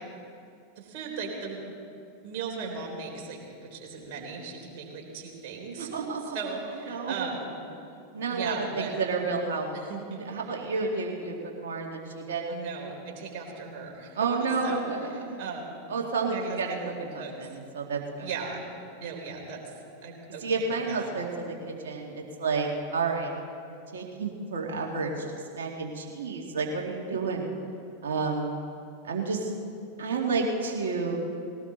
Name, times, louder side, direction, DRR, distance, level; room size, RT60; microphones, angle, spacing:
voice 1, 0.8-1.6 2.2-5.9 6.2-7.5 8.3-8.9 9.7-10.2 12.5-15.7 16.3-16.8 17.1-17.3 18.2-18.7 19.0-19.6 20.0-21.1, right 5 dB, 55° right, 0 dB, 3.8 m, -37 dB
voice 2, 5.8-6.4 6.9-7.2 8.1-9.7 10.2-12.5 14.1-15.4 15.9-18.3 20.4-23.3 23.9-25.3 25.5-27.5 28.0-28.5 29.0-29.5 30.0-31.2, right 4 dB, 70° right, -1 dB, 2.2 m, -30 dB
19.5 x 18.0 x 4.0 m, 2.5 s
figure-of-eight pair, 90°, 0 cm